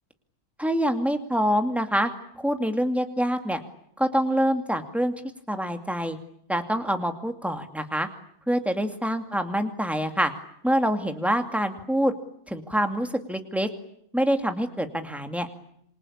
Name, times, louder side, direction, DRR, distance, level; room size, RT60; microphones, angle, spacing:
voice 1, 0.6-2.1 2.4-3.6 4.0-5.1 5.5-6.2 6.5-8.1 8.5-10.3 10.6-12.1 12.5-13.7 14.1-15.6, equal, ahead, 6 dB, 2.3 m, -25 dB
27.0 x 25.0 x 8.6 m, 0.71 s
omnidirectional pair, 1.6 m